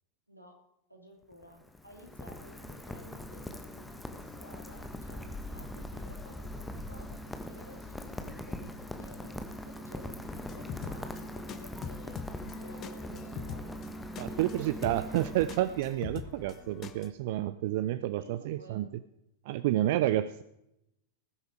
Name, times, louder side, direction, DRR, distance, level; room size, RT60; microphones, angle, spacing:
voice 1, 0.3-0.6 0.9-13.7 14.3-15.0 18.1-18.8, equal, 90° right, 1 dB, 2.8 m, -53 dB
Rain, 1.2-16.0, left 1 dB, 5° left, 1.3 m, -42 dB
sound 1, 10.2-17.1, left 7 dB, 30° left, 0.9 m, -44 dB
voice 2, 14.2-18.9 19.5-20.4, right 14 dB, 50° right, 14 dB, 0.4 m, -30 dB
19.5 x 7.9 x 4.8 m, 0.83 s
figure-of-eight pair, 90°, 0 cm